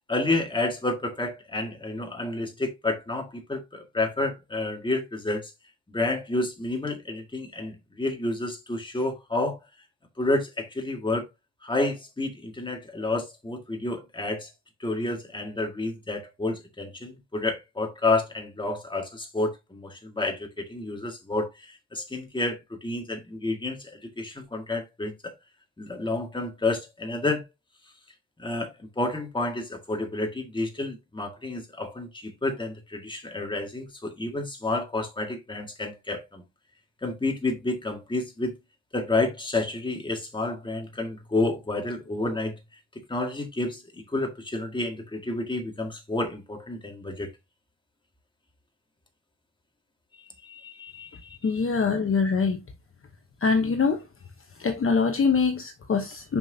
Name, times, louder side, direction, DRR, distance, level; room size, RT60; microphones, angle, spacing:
voice 1, 0.1-5.5 5.9-9.6 10.2-11.2 11.6-14.5 14.8-25.3 25.8-27.5 28.4-36.4 37.0-38.5 38.9-42.6 43.1-47.3 50.4-51.6, left 2 dB, 15° left, 1.9 m, -30 dB
voice 2, 51.4-52.6 53.4-54.0 54.6-56.4, left 5 dB, 40° left, 1.0 m, -24 dB
6.9 x 5.9 x 2.7 m
wide cardioid pair, 125°, 32 cm